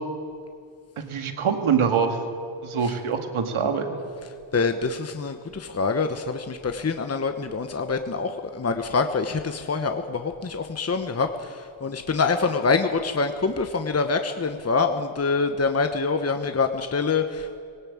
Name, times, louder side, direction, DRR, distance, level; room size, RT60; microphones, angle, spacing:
voice 1, 1.0-2.2 2.6-4.0, right 6 dB, 80° right, 6 dB, 2.2 m, -24 dB
voice 2, 4.5-17.6, left 4 dB, 30° left, 7 dB, 1.1 m, -25 dB
18.5 x 17.5 x 8.8 m, 2.3 s
cardioid pair, 65°, 49 cm